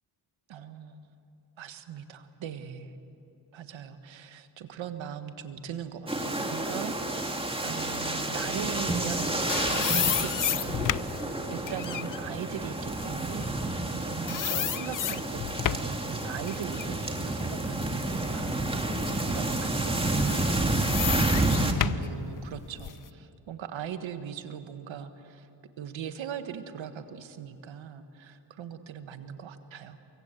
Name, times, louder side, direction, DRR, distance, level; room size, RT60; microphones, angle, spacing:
voice 1, 0.5-1.1 1.6-2.9 3.5-25.5 25.8-30.0, right 8 dB, 85° right, 9 dB, 1.6 m, -40 dB
sound 1, 6.1-21.7, right 2 dB, 10° right, 2.5 m, -30 dB
sound 2, 9.2-14.0 14.3-16.0 16.5-18.4 18.9-19.0 20.1-23.1, left 11 dB, 45° left, 0.5 m, -32 dB
24.5 x 22.0 x 8.2 m, 2.8 s
cardioid pair, 70°, 45 cm